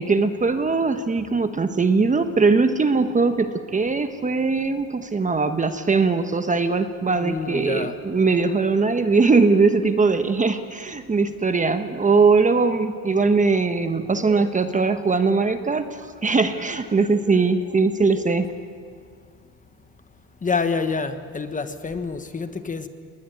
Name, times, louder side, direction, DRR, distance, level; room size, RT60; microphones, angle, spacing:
voice 1, 0.0-18.5, right 4 dB, 20° right, 1.1 m, -20 dB
voice 2, 7.2-8.0 20.4-22.9, left 4 dB, 20° left, 1.3 m, -27 dB
20.5 x 19.5 x 9.5 m
cardioid pair, 115°, 38 cm